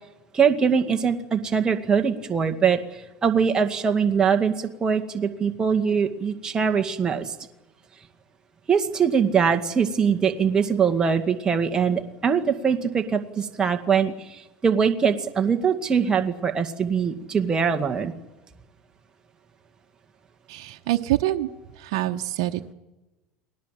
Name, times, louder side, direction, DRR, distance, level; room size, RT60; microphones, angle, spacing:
voice 1, 0.3-7.3 8.7-18.1, right 6 dB, 25° right, 5 dB, 2.0 m, -22 dB
voice 2, 20.5-21.5 21.8-22.7, right 15 dB, 75° right, 4 dB, 1.1 m, -26 dB
29.5 x 20.0 x 7.6 m, 1.1 s
supercardioid pair, 115°, 3 cm